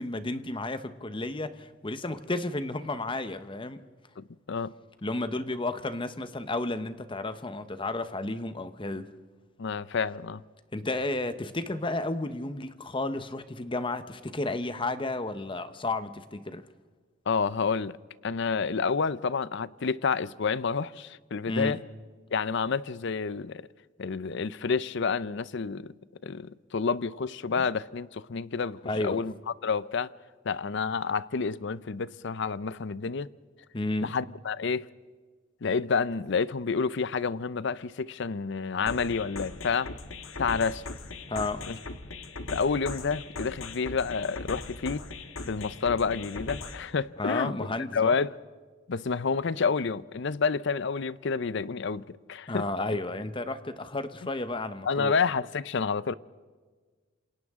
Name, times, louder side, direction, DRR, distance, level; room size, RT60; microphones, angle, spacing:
voice 1, 0.0-3.8 5.0-9.1 10.7-16.6 21.5-21.8 27.6-27.7 28.8-29.2 33.7-34.2 41.3-41.7 47.2-48.2 52.5-55.1, left 2 dB, 25° left, 0.9 m, -32 dB
voice 2, 4.2-4.7 9.6-10.4 17.3-18.0 18.2-21.8 22.3-23.7 24.0-25.9 26.2-29.3 29.6-30.1 30.4-33.3 34.0-34.9 35.6-39.9 40.4-40.8 41.7-41.8 42.5-45.0 45.4-47.5 47.9-48.3 48.9-52.6 54.9-56.1, left 5 dB, 60° left, 0.6 m, -29 dB
sound 1, 38.9-46.9, left 3 dB, 90° left, 1.6 m, -40 dB
28.5 x 27.5 x 3.7 m
head